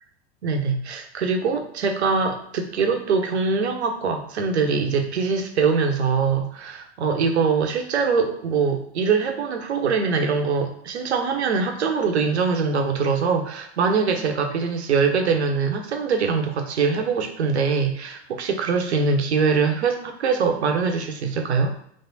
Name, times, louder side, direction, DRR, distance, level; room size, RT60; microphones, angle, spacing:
voice 1, 0.4-21.7, right 5 dB, 75° right, 4 dB, 1.0 m, -23 dB
3.6 x 3.5 x 4.1 m, 0.68 s
hypercardioid pair, 95°, 33 cm